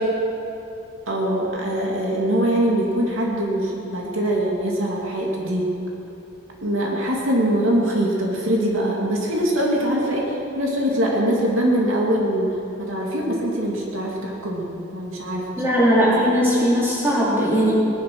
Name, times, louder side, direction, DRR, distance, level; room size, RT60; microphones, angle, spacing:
voice 1, 1.1-5.7 6.6-12.5 12.8-15.8, right 1 dB, 85° right, -2 dB, 2.6 m, -23 dB
voice 2, 15.6-17.7, equal, 10° right, -8 dB, 4.1 m, -19 dB
19.0 x 11.0 x 6.2 m, 2.9 s
head